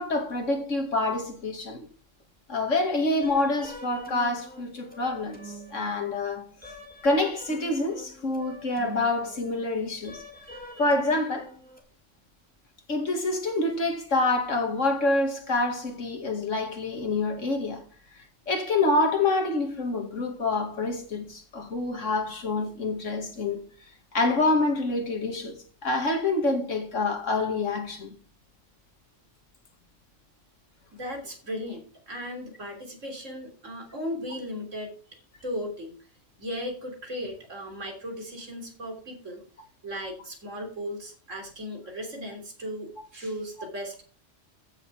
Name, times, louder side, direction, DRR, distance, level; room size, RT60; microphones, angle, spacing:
voice 1, 0.0-1.9 2.5-6.4 7.0-10.2 10.8-11.5 12.9-17.8 18.5-23.7 24.1-25.6 25.8-28.1, left 2 dB, 85° left, 2.7 m, -27 dB
sound 1, 3.2-11.8, equal, 5° left, 2.6 m, -45 dB
voice 2, 30.9-36.0 36.4-39.4 39.8-44.0, equal, 85° right, 3.7 m, -36 dB
15.0 x 7.0 x 3.6 m
omnidirectional pair, 1.3 m